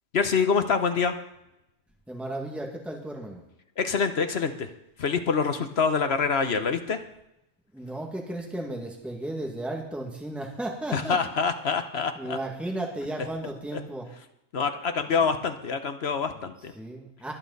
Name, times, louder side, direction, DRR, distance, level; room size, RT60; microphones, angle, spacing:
voice 1, 0.1-1.1 3.8-4.7 5.0-7.0 10.9-12.4 13.7-13.8 14.5-16.7, left 5 dB, 55° left, 8 dB, 1.2 m, -26 dB
voice 2, 2.1-3.4 7.7-11.2 12.2-14.1 16.7-17.3, right 1 dB, ahead, 0 dB, 2.0 m, -34 dB
22.5 x 8.6 x 4.1 m, 0.83 s
omnidirectional pair, 1.3 m